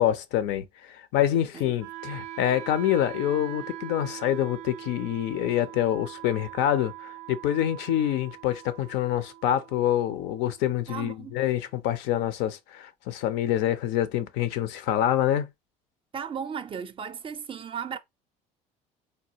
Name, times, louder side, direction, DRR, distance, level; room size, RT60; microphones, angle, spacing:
voice 1, 0.0-15.5, left 11 dB, 75° left, 0.5 m, -26 dB
Wind instrument woodwind instrument, 1.8-11.8, right 13 dB, 90° right, 0.4 m, -43 dB
voice 2, 10.9-11.4 16.1-18.0, right 7 dB, 30° right, 0.4 m, -35 dB
3.2 x 2.3 x 2.7 m
supercardioid pair, 90°, 18 cm